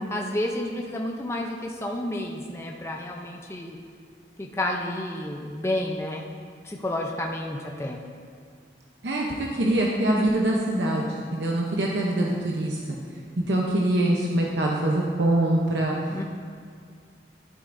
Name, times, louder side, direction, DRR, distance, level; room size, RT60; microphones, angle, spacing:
voice 1, 0.1-3.8 4.4-6.2 6.6-8.0 16.1-16.2, left 1 dB, 15° left, 0 dB, 0.5 m, -30 dB
voice 2, 9.0-11.1 11.3-13.0 13.5-16.0, right 1 dB, 75° right, -2 dB, 0.7 m, -24 dB
12.0 x 7.7 x 2.6 m, 2.1 s
head